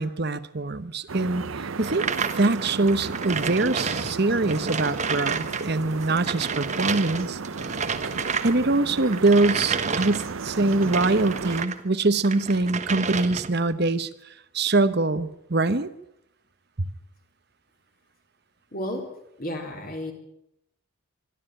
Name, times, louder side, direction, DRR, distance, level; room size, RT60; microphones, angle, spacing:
voice 1, 0.0-2.1 2.3-7.4 8.4-14.1 14.5-15.9, right 2 dB, 50° right, 13 dB, 1.0 m, -23 dB
sound 1, 1.1-11.7, right 4 dB, 70° right, 0.7 m, -34 dB
Table with wheels being rolled, 1.8-5.7 5.9-11.8 12.2-13.7, right 5 dB, 35° right, 1.3 m, -31 dB
voice 2, 18.7-19.1 19.4-20.1, left 1 dB, 40° left, 3 dB, 4.0 m, -32 dB
25.5 x 12.5 x 9.0 m, 0.79 s
head